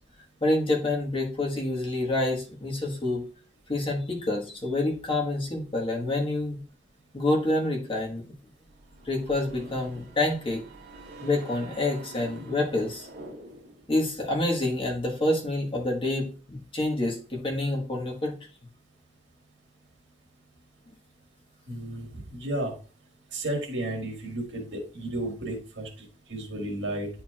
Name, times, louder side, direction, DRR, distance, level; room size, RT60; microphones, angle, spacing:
voice 1, 0.4-3.2 3.7-6.6 7.1-8.3 9.0-10.7 11.2-13.1 13.9-18.3, left 2 dB, 30° left, -1 dB, 1.5 m, -27 dB
sound 1, 8.6-13.9, right 1 dB, 60° right, 1.9 m, -46 dB
voice 2, 21.7-22.7 23.3-27.1, right 1 dB, 85° right, 1 dB, 1.8 m, -33 dB
9.5 x 4.5 x 2.4 m, 0.37 s
head